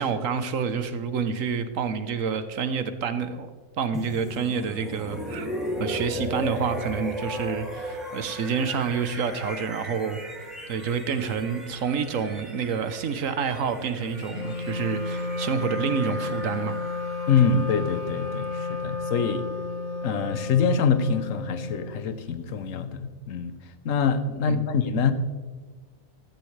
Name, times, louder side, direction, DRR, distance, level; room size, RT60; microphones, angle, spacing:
voice 1, 0.0-3.5 3.8-5.5 5.8-10.2 10.7-16.8 24.5-24.6, right 6 dB, 70° right, 10 dB, 1.3 m, -28 dB
sound 1, 3.9-19.8, equal, ahead, 2.4 m, -37 dB
Wind instrument woodwind instrument, 14.3-22.1, left 3 dB, 45° left, 1.1 m, -32 dB
voice 2, 17.3-19.4 20.0-23.5 23.8-25.1, left 6 dB, 70° left, 11 dB, 1.2 m, -25 dB
15.0 x 13.0 x 3.3 m, 1.5 s
omnidirectional pair, 1.5 m